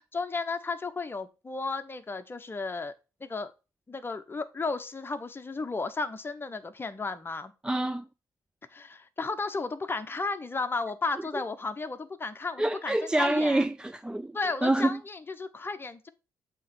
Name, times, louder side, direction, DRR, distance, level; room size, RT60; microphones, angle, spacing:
voice 1, 0.1-2.9 3.2-3.5 3.9-7.5 8.7-13.6 14.3-16.1, left 3 dB, 25° left, 0.9 m, -34 dB
voice 2, 7.6-8.1 12.6-14.3 14.6-15.0, right 1 dB, 10° right, 0.3 m, -26 dB
7.5 x 3.1 x 5.4 m
supercardioid pair, 55°, 8 cm